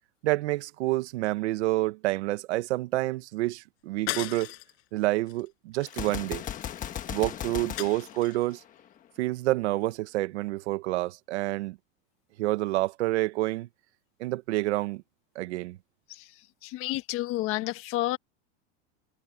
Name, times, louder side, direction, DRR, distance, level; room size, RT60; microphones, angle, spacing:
voice 1, 0.2-4.5 4.9-6.4 7.1-8.6 9.2-11.8 12.4-13.7 14.2-15.0 15.3-15.8, right 18 dB, 85° right, 1.4 m, -28 dB
sound 1, 4.1-4.8 5.3-5.5 5.8-6.8 7.8-8.5, left 18 dB, 75° left, 7.7 m, -37 dB
Gunshot gunfire, 5.9-9.0, left 10 dB, 25° left, 1.4 m, -37 dB
voice 2, 16.6-18.2, left 17 dB, 40° left, 1.6 m, -30 dB
supercardioid pair, 165°, 33 cm